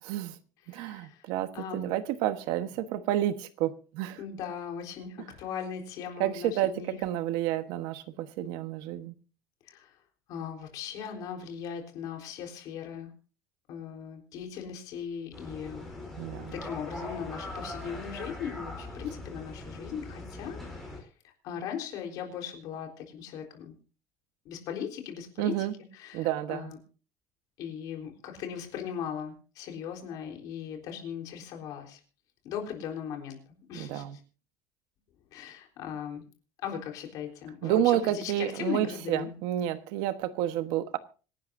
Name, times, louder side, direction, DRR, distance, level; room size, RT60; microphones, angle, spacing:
voice 1, 0.1-0.4 0.7-4.2 6.2-9.1 16.2-16.6 25.4-25.7 26.1-26.7 33.7-34.2 37.6-41.0, right 12 dB, 65° right, 1.2 m, -30 dB
voice 2, 0.7-1.3 1.5-1.9 4.2-7.0 9.7-10.0 10.3-13.1 13.7-15.9 16.5-23.7 24.4-25.7 25.9-26.8 27.6-32.0 32.4-33.4 33.7-34.2 35.3-36.2 36.6-39.3, left 8 dB, 50° left, 3.8 m, -38 dB
sound 1, 15.3-21.0, left 2 dB, ahead, 4.7 m, -41 dB
26.0 x 11.5 x 2.6 m
cardioid pair, 175°, 8 cm